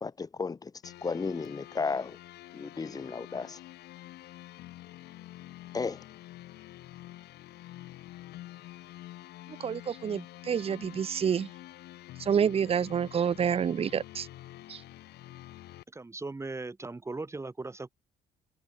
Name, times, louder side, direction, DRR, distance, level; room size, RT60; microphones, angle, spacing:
voice 1, 0.0-2.2 2.5-3.6 5.7-6.0, left 4 dB, 20° left, 0.9 m, -34 dB
sound 1, 0.8-15.8, left 15 dB, 75° left, 3.6 m, -48 dB
voice 2, 9.5-11.5 12.2-14.3 14.7-14.8, right 7 dB, 35° right, 1.0 m, -28 dB
voice 3, 15.9-17.9, right 3 dB, 15° right, 2.8 m, -38 dB
cardioid pair, 110°, 17 cm